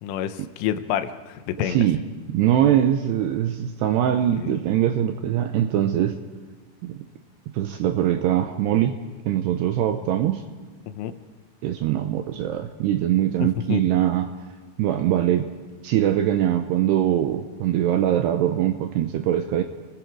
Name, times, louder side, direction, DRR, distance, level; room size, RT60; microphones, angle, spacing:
voice 1, 0.0-1.8 4.3-4.6 10.9-11.1 13.4-13.8, left 10 dB, 90° left, 9 dB, 3.5 m, -28 dB
voice 2, 1.6-2.0 2.3-6.2 6.8-7.0 7.5-9.0 9.3-10.4 11.6-14.3 14.8-15.5 15.8-19.6, right 11 dB, 80° right, 7 dB, 2.5 m, -22 dB
29.5 x 19.5 x 4.7 m, 1.4 s
omnidirectional pair, 5.6 m